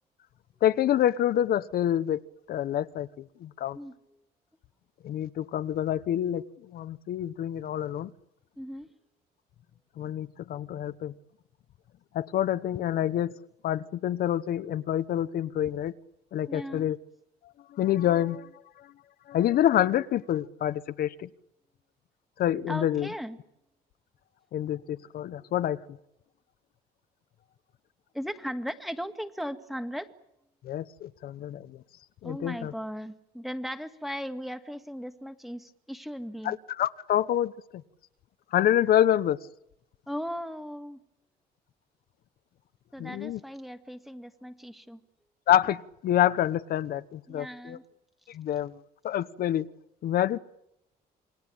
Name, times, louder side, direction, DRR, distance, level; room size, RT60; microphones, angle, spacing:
voice 1, 0.6-2.2 2.5-3.1 3.4-3.8 5.0-8.1 10.0-11.1 12.1-13.3 13.6-15.9 16.3-17.0 17.7-18.5 18.8-18.9 19.3-21.3 22.4-23.1 24.5-25.8 30.6-31.8 32.2-32.7 36.4-37.5 38.5-39.4 43.0-43.4 45.5-47.8 48.3-48.8 49.0-49.7 50.0-50.4, left 11 dB, 60° left, 13 dB, 1.0 m, -27 dB
voice 2, 3.7-4.2 8.6-8.9 16.5-16.9 22.7-23.4 28.1-30.1 32.2-36.6 40.1-41.0 42.9-45.0 47.3-47.8, equal, ahead, 9 dB, 2.1 m, -37 dB
28.0 x 21.5 x 8.9 m, 0.81 s
cardioid pair, 110°, 17 cm